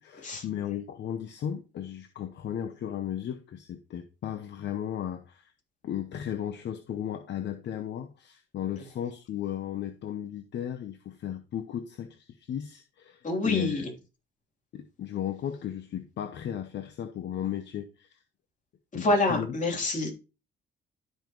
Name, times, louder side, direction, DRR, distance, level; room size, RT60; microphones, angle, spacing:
voice 1, 0.0-5.5 5.8-13.8 14.7-18.2 18.9-19.6, left 10 dB, 65° left, 0.9 m, -35 dB
voice 2, 13.2-13.9 18.9-20.1, left 2 dB, 40° left, 3.4 m, -27 dB
12.5 x 5.3 x 3.1 m
cardioid pair, 90°, 20 cm